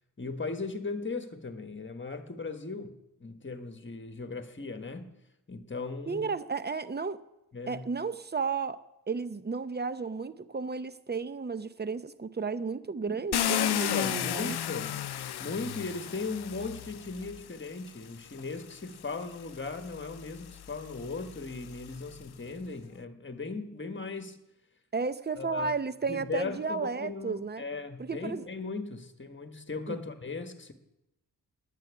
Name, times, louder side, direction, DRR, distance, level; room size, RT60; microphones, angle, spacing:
voice 1, 0.2-5.1 5.5-6.3 7.5-7.9 13.1-15.0 15.4-24.4 25.4-25.7 26.1-30.7, left 3 dB, 30° left, 8 dB, 1.4 m, -38 dB
voice 2, 6.1-7.2 7.7-8.8 9.1-14.5 24.9-27.6 28.0-28.5 29.9-30.0, right 4 dB, 25° right, 13 dB, 0.7 m, -33 dB
Car, 13.3-17.4 18.4-18.5 19.0-22.3, left 11 dB, 75° left, 0.5 m, -34 dB
10.5 x 9.3 x 9.7 m, 0.90 s
wide cardioid pair, 110°, 40 cm